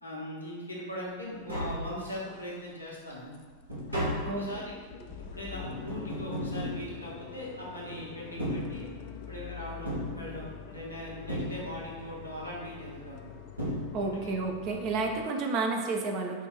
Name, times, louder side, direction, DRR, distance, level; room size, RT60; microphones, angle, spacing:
voice 1, 0.0-3.3 3.9-4.8 5.2-8.9 9.1-13.4 14.0-14.4, equal, 90° left, -6 dB, 1.1 m, -40 dB
Tap, 1.0-1.1 1.3-2.4 2.9-7.6 8.2-9.3 9.8-10.8 11.3-12.1 13.1-13.2 13.6-14.4 14.7-14.8, equal, 85° right, 1.3 m, -36 dB
sound 1, 1.7-1.8 2.2-2.6 2.9-3.0 3.3-3.5 3.7-15.3, left 8 dB, 45° left, 0.3 m, -46 dB
voice 2, 13.9-16.5, right 3 dB, 40° right, 2 dB, 0.6 m, -31 dB
5.1 x 2.5 x 4.1 m, 1.4 s
figure-of-eight pair, 90°, 0 cm